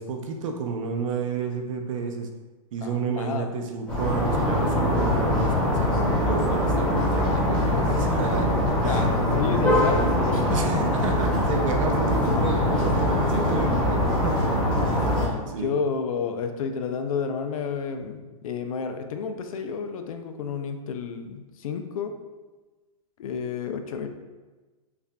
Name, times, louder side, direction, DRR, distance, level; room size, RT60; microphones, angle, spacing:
voice 1, 0.0-2.3 2.7-8.5 8.8-9.1 10.5-14.5 15.5-15.7, right 5 dB, 60° right, 3 dB, 0.6 m, -31 dB
voice 2, 2.8-3.5 8.8-10.6 15.0-22.2 23.2-24.1, left 6 dB, 70° left, 7 dB, 0.5 m, -31 dB
sound 1, 3.9-15.3, left 1 dB, 5° left, 0.9 m, -23 dB
5.5 x 2.5 x 2.2 m, 1.2 s
hypercardioid pair, 150°, 19 cm